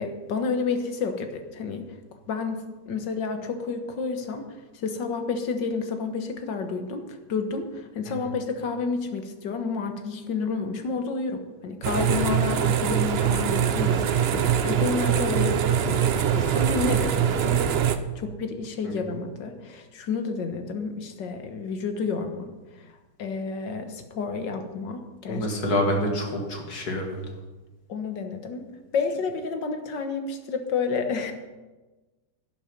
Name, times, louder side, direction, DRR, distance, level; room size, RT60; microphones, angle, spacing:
voice 1, 0.0-1.9 2.3-4.5 4.7-17.6 18.2-22.5 23.2-25.5 27.9-28.6 28.9-31.3, left 5 dB, 80° left, 6 dB, 1.9 m, -30 dB
sound 1, 11.8-18.0, right 8 dB, 90° right, 0.5 m, -23 dB
voice 2, 25.3-27.2, left 1 dB, 60° left, 1 dB, 2.6 m, -26 dB
11.0 x 10.5 x 5.3 m, 1.2 s
omnidirectional pair, 1.9 m